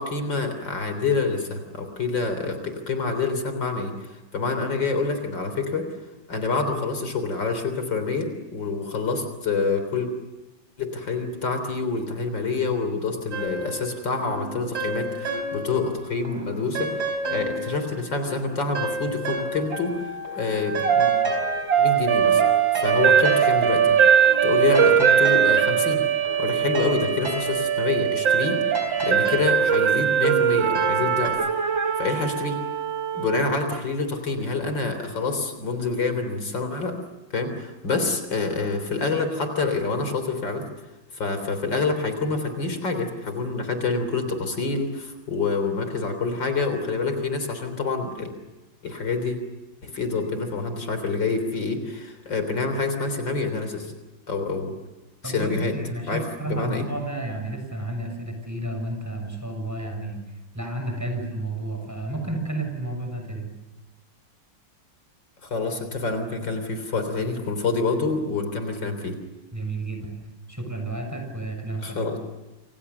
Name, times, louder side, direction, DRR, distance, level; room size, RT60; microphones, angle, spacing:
voice 1, 0.0-5.9 6.3-10.1 10.8-20.0 20.4-21.1 21.8-22.4 22.7-26.0 26.4-28.6 29.0-31.4 32.0-32.6 33.1-37.0 37.3-40.7 41.1-48.3 48.8-49.4 49.8-53.9 54.3-54.7 55.2-55.7 56.1-56.8 65.4-69.2 71.8-72.2, left 4 dB, 70° left, 8 dB, 4.2 m, -27 dB
sound 1, 13.3-15.9 16.2-20.0 20.2-31.3, right 1 dB, 55° right, 4.9 m, -33 dB
sound 2, 19.7-33.8, right 8 dB, 75° right, 2.2 m, -21 dB
voice 2, 55.2-60.2 60.5-63.5 69.5-70.1 70.5-72.0, right 2 dB, 10° right, 4 dB, 6.6 m, -31 dB
28.5 x 28.0 x 6.9 m, 1.1 s
omnidirectional pair, 2.1 m